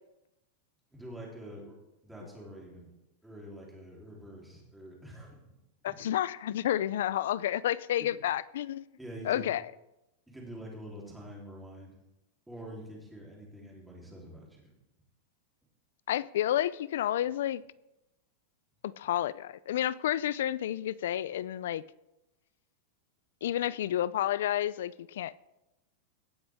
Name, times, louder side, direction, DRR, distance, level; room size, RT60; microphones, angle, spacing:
voice 1, 0.9-1.7 2.0-2.9 3.2-5.4 5.9-6.0 8.0-8.1 9.0-9.5 10.3-12.0 12.5-14.7, right 1 dB, 5° right, 3.5 m, -46 dB
voice 2, 5.8-8.8 9.2-9.6 16.1-17.6 18.8-21.8 23.4-25.3, left 12 dB, 80° left, 0.4 m, -30 dB
17.5 x 8.0 x 3.6 m
supercardioid pair, 145°, 0 cm